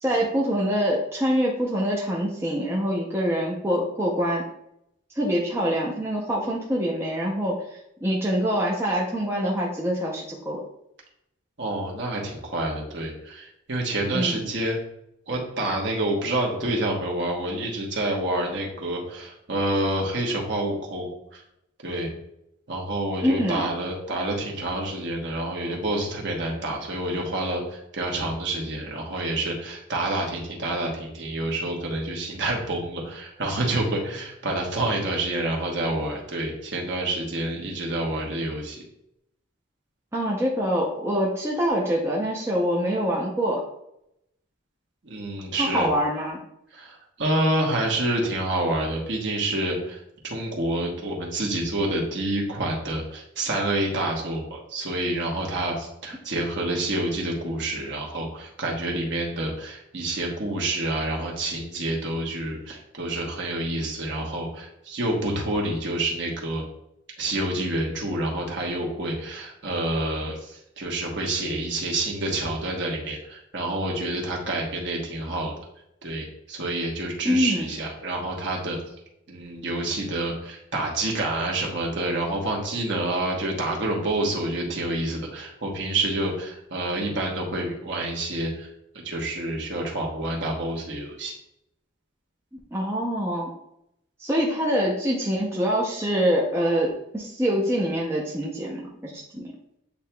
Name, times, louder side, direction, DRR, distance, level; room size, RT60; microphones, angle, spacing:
voice 1, 0.0-4.4 5.1-10.6 14.1-14.4 23.2-23.7 40.1-43.6 45.6-46.4 77.2-77.7 92.7-93.5 94.2-99.5, equal, 10° right, -3 dB, 0.5 m, -25 dB
voice 2, 11.6-14.8 15.3-21.4 21.8-22.1 22.7-38.8 45.0-45.9 46.7-66.6 67.2-75.5 76.0-78.8 79.3-88.7 89.0-91.3, right 1 dB, 55° right, -1 dB, 1.1 m, -28 dB
8.2 x 2.8 x 2.2 m, 0.79 s
head